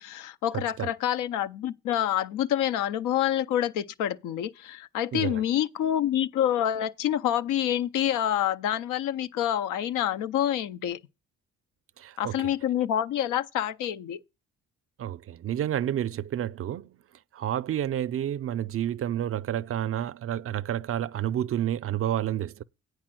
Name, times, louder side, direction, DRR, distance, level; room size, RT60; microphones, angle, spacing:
voice 1, 0.0-11.0 12.2-14.2, left 11 dB, 90° left, 0.6 m, -27 dB
voice 2, 0.5-0.9 5.1-5.4 12.0-12.5 15.0-17.0 17.3-22.6, right 11 dB, 50° right, 0.5 m, -30 dB
8.8 x 4.9 x 7.6 m
cardioid pair, 90°, 30 cm